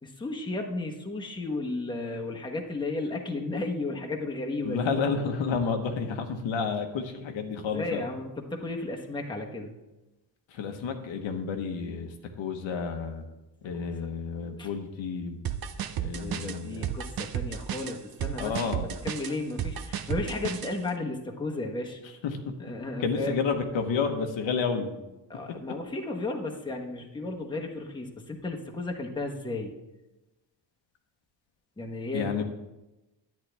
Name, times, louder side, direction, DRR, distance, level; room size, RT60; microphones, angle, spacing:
voice 1, 0.0-4.9 7.6-9.7 13.8-13.9 14.6-14.7 16.2-22.0 22.6-23.4 25.3-29.7 31.8-32.4, left 2 dB, 10° left, 0 dB, 1.2 m, -34 dB
voice 2, 4.6-8.1 10.5-13.2 13.6-15.4 16.0-16.9 18.4-18.9 22.2-22.4 23.0-24.9 32.1-32.4, left 5 dB, 75° left, 4 dB, 1.2 m, -30 dB
sound 1, 15.4-20.7, right 9 dB, 50° right, 0.7 m, -33 dB
10.5 x 9.5 x 3.4 m, 1.0 s
cardioid pair, 115°, 46 cm